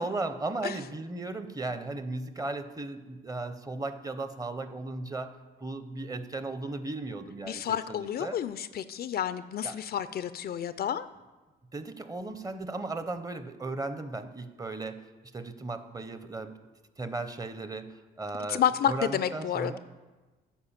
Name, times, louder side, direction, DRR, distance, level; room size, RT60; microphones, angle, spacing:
voice 1, 0.0-8.4 9.6-9.8 11.7-15.1 15.3-16.6 17.0-19.8, right 2 dB, 20° right, 10 dB, 0.7 m, -36 dB
voice 2, 7.5-11.1 18.5-19.8, left 9 dB, 50° left, 14 dB, 0.4 m, -30 dB
8.8 x 4.9 x 7.2 m, 1.2 s
cardioid pair, 90°, 20 cm